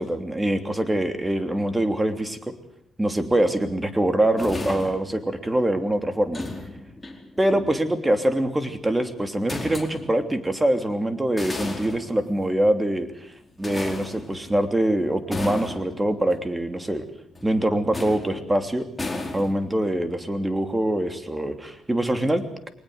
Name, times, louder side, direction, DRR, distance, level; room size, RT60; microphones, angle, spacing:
voice 1, 0.0-2.5 3.0-6.4 7.4-13.1 13.6-17.0 17.4-18.8 19.3-22.7, right 1 dB, 15° right, 8 dB, 3.0 m, -24 dB
sound 1, 4.4-5.2 6.2-7.9 9.5-10.2 11.2-12.6 13.6-14.7 15.3-16.5 17.3-17.6 17.9-18.6 19.0-19.8, left 2 dB, 15° left, 4.5 m, -34 dB
22.5 x 19.5 x 8.1 m, 0.71 s
cardioid pair, 85°, 0 cm